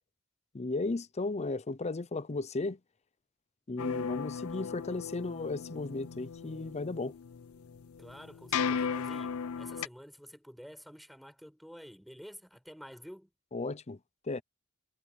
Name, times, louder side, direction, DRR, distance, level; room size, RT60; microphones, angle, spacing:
voice 1, 0.5-2.8 3.7-7.1 13.5-14.0 14.3-14.4, left 3 dB, 30° left, 0.6 m, -35 dB
sound 1, 3.8-9.9, left 6 dB, 85° left, 0.5 m, -36 dB
voice 2, 8.0-13.3, equal, ahead, 6.4 m, -49 dB
head